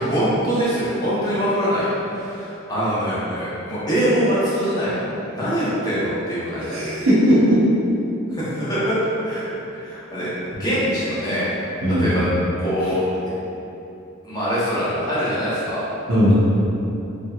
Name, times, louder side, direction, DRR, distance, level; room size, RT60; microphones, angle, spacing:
voice 1, 0.0-5.0 5.3-6.9 8.3-9.0 9.2-9.4 9.8-10.3 10.6-11.5 12.0-13.0 14.2-15.8, equal, 20° left, -11 dB, 0.8 m, -23 dB
voice 2, 6.6-7.6 11.8-12.1 12.8-12.9 16.1-16.3, equal, 65° right, -9 dB, 0.6 m, -18 dB
3.2 x 2.7 x 2.3 m, 2.9 s
head